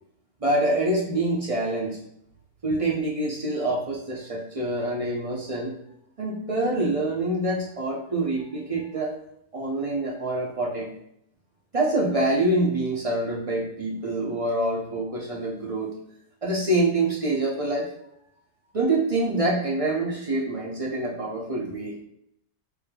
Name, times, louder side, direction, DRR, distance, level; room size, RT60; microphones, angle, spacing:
voice 1, 0.4-2.0 2.6-5.7 6.2-9.1 9.5-10.9 11.7-15.9 16.4-17.9 18.7-22.0, right 2 dB, 40° right, -3 dB, 0.5 m, -26 dB
6.1 x 3.4 x 2.3 m, 0.75 s
omnidirectional pair, 1.5 m